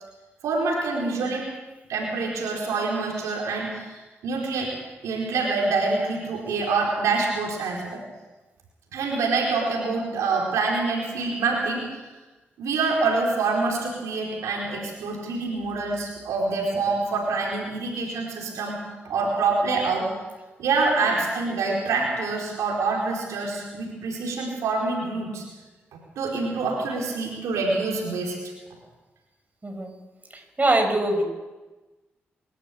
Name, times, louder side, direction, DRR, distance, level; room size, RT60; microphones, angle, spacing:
voice 1, 0.4-1.5 1.9-4.7 5.0-8.0 8.9-12.0 12.6-20.1 20.6-25.4 26.2-28.4, right 3 dB, 80° right, -1 dB, 4.5 m, -26 dB
voice 2, 29.6-29.9 30.3-31.2, right 2 dB, 30° right, 3 dB, 6.5 m, -23 dB
26.0 x 13.0 x 8.6 m, 1.2 s
supercardioid pair, 40°, 5 cm